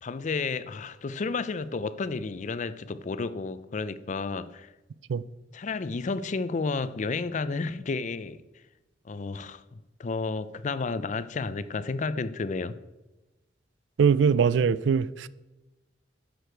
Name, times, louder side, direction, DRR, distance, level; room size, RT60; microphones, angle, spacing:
voice 1, 0.0-4.7 5.5-8.4 9.0-9.6 10.0-12.8, left 4 dB, 45° left, 0.4 m, -31 dB
voice 2, 14.0-15.3, right 6 dB, 80° right, 0.4 m, -22 dB
10.0 x 6.5 x 4.5 m
head